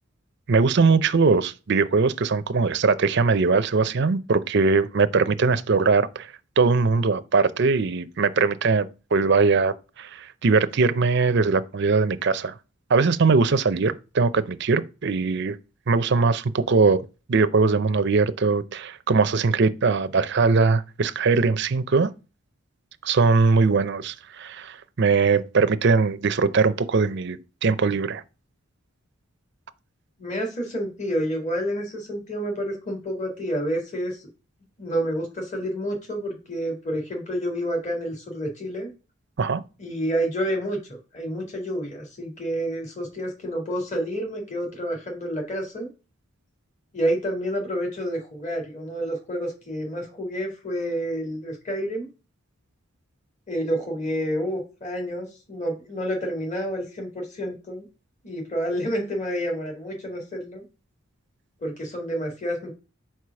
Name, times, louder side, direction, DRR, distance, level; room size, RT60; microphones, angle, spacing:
voice 1, 0.5-12.5 12.9-15.6 15.9-22.1 23.0-28.2 39.4-39.6, right 4 dB, 55° right, 0.5 m, -21 dB
voice 2, 30.2-34.2 34.8-38.9 39.8-45.9 46.9-52.1 53.5-57.9 58.2-60.6 61.6-62.7, equal, 35° left, 1.9 m, -29 dB
4.8 x 4.5 x 5.7 m
head